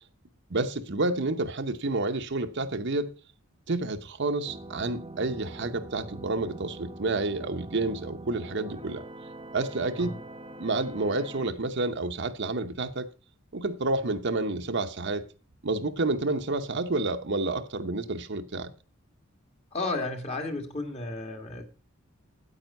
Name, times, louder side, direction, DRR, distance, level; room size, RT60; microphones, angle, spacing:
voice 1, 0.5-3.1 3.7-9.0 9.5-10.2 10.6-13.1 13.5-15.2 15.6-18.7, right 2 dB, 55° right, 0.9 m, -29 dB
sound 1, 4.5-11.5, right 2 dB, 25° right, 0.9 m, -43 dB
voice 2, 19.7-21.6, left 2 dB, 30° left, 1.8 m, -33 dB
9.2 x 8.7 x 5.4 m
head